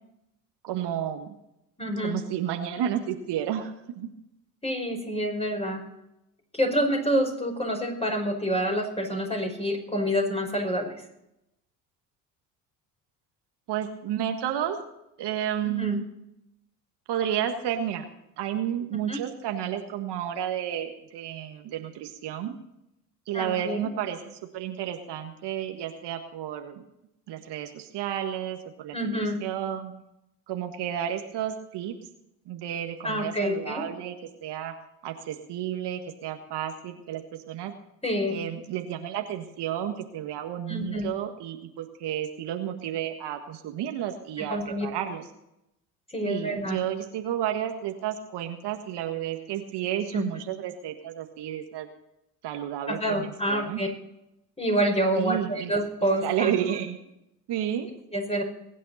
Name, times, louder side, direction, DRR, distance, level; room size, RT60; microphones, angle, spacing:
voice 1, 0.6-1.4 2.0-4.1 13.7-14.8 15.2-16.1 17.1-18.1 18.4-22.6 23.3-26.8 27.3-29.9 30.5-31.9 32.5-34.7 35.0-37.7 38.3-45.3 46.3-51.9 52.4-53.8 55.2-55.7 56.0-57.0 57.5-57.9, right 10 dB, 60° right, 5 dB, 1.7 m, -31 dB
voice 2, 1.8-2.2 4.6-5.8 6.5-11.0 15.7-16.0 19.1-19.2 23.3-23.9 28.9-29.4 33.0-33.9 38.0-38.4 40.7-41.1 44.4-44.9 46.1-46.8 50.1-50.2 52.9-53.9 54.6-56.5 58.1-58.4, equal, 15° left, 2 dB, 5.5 m, -27 dB
22.0 x 9.4 x 4.2 m, 0.85 s
hypercardioid pair, 60°, 46 cm